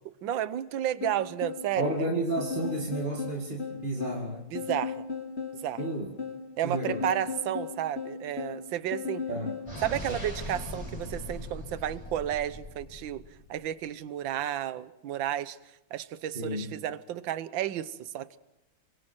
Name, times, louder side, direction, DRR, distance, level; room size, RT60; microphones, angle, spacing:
voice 1, 0.2-2.1 4.5-5.0 5.6-5.8 6.6-9.2 9.8-13.2 13.5-15.6 15.9-18.4, right 11 dB, 70° right, 14 dB, 1.6 m, -32 dB
sound 1, 1.0-9.7, left 5 dB, 30° left, 2.9 m, -36 dB
voice 2, 1.8-4.5 5.8-6.1 6.6-7.0 9.3-9.5 16.3-16.7, right 2 dB, 25° right, 0 dB, 2.5 m, -32 dB
sound 2, 9.7-13.5, left 1 dB, 15° left, 6.1 m, -40 dB
28.0 x 25.5 x 4.5 m, 0.90 s
omnidirectional pair, 2.2 m